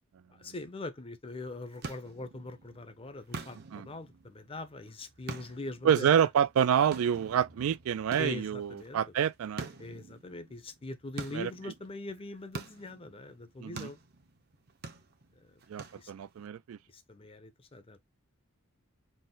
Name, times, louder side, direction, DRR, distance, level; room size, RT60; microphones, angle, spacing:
voice 1, 0.3-6.3 8.2-9.0 9.8-14.0 15.4-15.5 15.9-16.1 16.9-18.0, left 2 dB, 25° left, 0.5 m, -42 dB
sound 1, 1.3-16.5, right 3 dB, 45° right, 0.7 m, -47 dB
voice 2, 5.8-9.7 11.3-11.5 13.6-13.9 15.7-16.8, right 8 dB, 70° right, 0.3 m, -27 dB
4.2 x 2.1 x 3.7 m
head